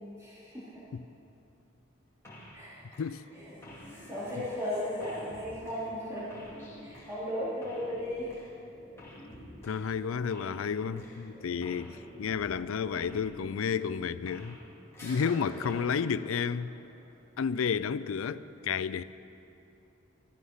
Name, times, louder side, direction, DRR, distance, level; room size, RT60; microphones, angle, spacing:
voice 1, 0.2-0.8 2.5-2.8 3.9-6.3 6.8-8.3 11.9-12.0 15.5-15.9, left 1 dB, 15° right, 3.4 m, -36 dB
sound 1, 2.2-2.7 2.9-14.7 14.9-17.1, left 1 dB, 15° left, 2.3 m, -49 dB
voice 2, 9.6-14.6 15.0-16.7 17.4-19.0, left 6 dB, 90° left, 0.4 m, -31 dB
14.0 x 13.0 x 5.6 m
head